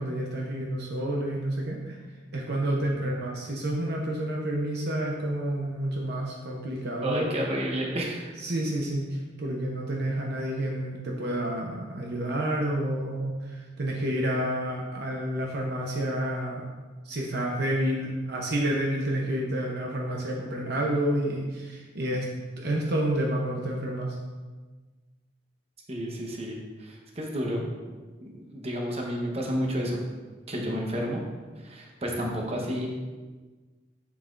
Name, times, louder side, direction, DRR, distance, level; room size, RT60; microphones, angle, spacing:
voice 1, 0.0-2.0 2.3-7.3 8.4-16.7 17.0-22.3 22.6-24.2, right 1 dB, 55° right, -1 dB, 0.8 m, -29 dB
voice 2, 7.0-8.3 25.9-27.6 28.2-30.0 30.5-31.2 31.6-32.9, equal, 30° right, -1 dB, 1.0 m, -31 dB
7.1 x 6.9 x 2.6 m, 1.3 s
head